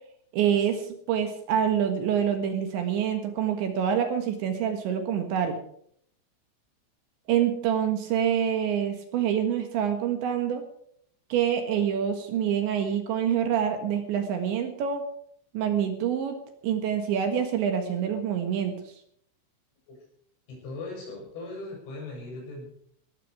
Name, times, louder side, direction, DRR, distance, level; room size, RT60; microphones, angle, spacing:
voice 1, 0.3-5.6 7.3-10.6 11.3-15.0 15.5-16.4 16.6-18.7, right 8 dB, 70° right, 6 dB, 3.5 m, -26 dB
voice 2, 20.5-22.7, left 2 dB, 60° left, -1 dB, 9.7 m, -39 dB
18.0 x 14.5 x 4.9 m, 0.66 s
omnidirectional pair, 6.0 m